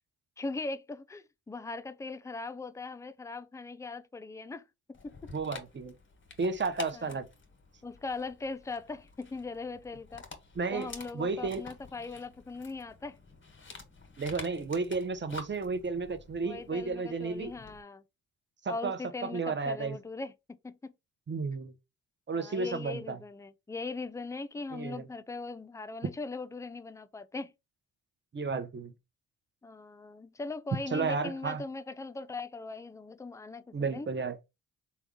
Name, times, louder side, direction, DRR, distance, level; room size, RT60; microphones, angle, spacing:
voice 1, 0.4-4.6 4.9-5.3 6.9-7.2 7.8-10.2 10.7-13.2 16.4-18.0 18.7-20.9 22.3-27.5 29.6-34.1, left 3 dB, 10° left, 0.3 m, -40 dB
Dog, 4.9-17.8, left 3 dB, 25° left, 1.2 m, -49 dB
voice 2, 5.3-5.9 6.4-7.3 10.6-11.6 14.2-17.5 18.6-20.0 21.3-21.7 22.3-23.2 24.7-25.1 28.3-28.9 30.9-31.6 33.7-34.4, right 4 dB, 25° right, 0.7 m, -33 dB
3.5 x 2.3 x 3.6 m
supercardioid pair, 55°, 42 cm